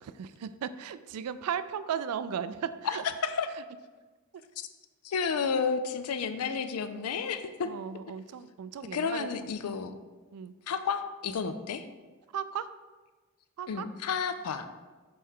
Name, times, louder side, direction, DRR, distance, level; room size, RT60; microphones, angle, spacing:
voice 1, 0.0-3.0 7.6-9.3 10.3-10.5 12.3-12.7 13.6-13.9, right 8 dB, 90° right, 13 dB, 0.3 m, -36 dB
voice 2, 5.0-7.7 8.9-9.9 10.7-11.8 13.7-14.7, left 5 dB, 85° left, 10 dB, 0.4 m, -31 dB
6.5 x 4.3 x 3.6 m, 1.3 s
head